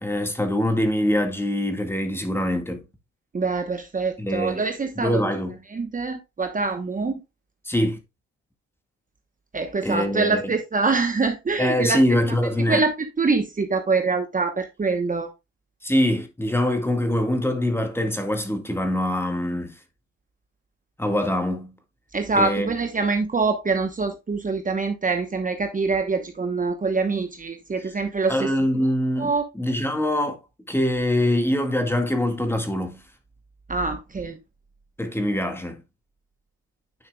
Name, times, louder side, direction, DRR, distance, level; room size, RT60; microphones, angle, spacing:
voice 1, 0.0-2.8 4.2-4.6 5.0-5.6 7.7-8.0 9.8-10.5 11.6-12.8 15.8-19.8 21.0-21.7 22.4-22.7 27.8-27.9 28.3-29.3 29.6-30.4 30.7-33.0 35.0-35.8, left 1 dB, 10° left, 1.8 m, -24 dB
voice 2, 3.3-5.2 5.7-7.2 9.5-12.0 12.7-15.3 22.1-28.5 29.2-29.4 33.7-34.4, right 4 dB, 25° right, 1.1 m, -24 dB
9.9 x 5.7 x 2.3 m
cardioid pair, 90°, 30 cm